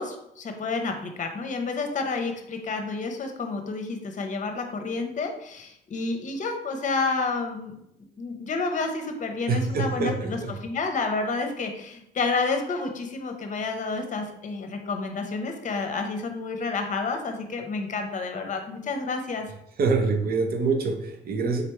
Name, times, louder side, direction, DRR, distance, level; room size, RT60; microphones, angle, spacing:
voice 1, 0.0-7.7 8.2-19.5, left 4 dB, 40° left, 5 dB, 0.8 m, -30 dB
voice 2, 9.5-10.6 19.8-21.6, right 4 dB, 50° right, 5 dB, 0.8 m, -25 dB
3.9 x 3.3 x 3.1 m, 0.77 s
supercardioid pair, 80°, 19 cm